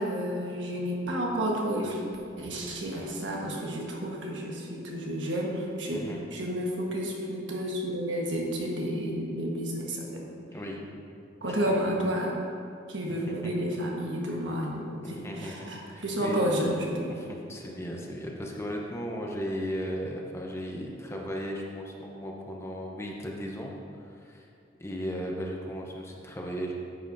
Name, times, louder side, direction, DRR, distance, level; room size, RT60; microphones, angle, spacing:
voice 1, 0.0-2.0 2.4-6.0 6.3-10.2 11.4-12.4 12.9-17.2, equal, 75° right, -2 dB, 1.4 m, -31 dB
voice 2, 10.5-10.9 11.4-11.8 13.1-13.5 15.0-16.4 17.1-24.5 24.8-26.7, equal, 15° left, -1 dB, 0.8 m, -36 dB
10.0 x 7.8 x 2.7 m, 2.5 s
head